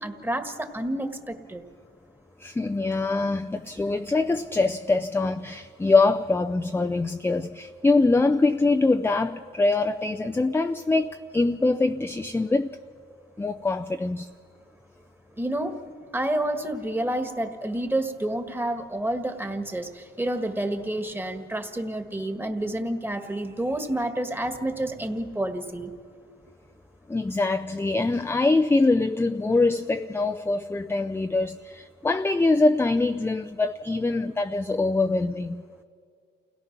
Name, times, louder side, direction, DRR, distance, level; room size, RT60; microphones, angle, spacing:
voice 1, 0.0-1.6 15.4-15.8 16.1-25.9, right 1 dB, 10° right, 1.6 m, -29 dB
voice 2, 2.4-12.8 13.4-14.3 27.1-35.6, left 3 dB, 10° left, 0.5 m, -24 dB
29.0 x 17.5 x 6.0 m
cardioid pair, 90°, 20 cm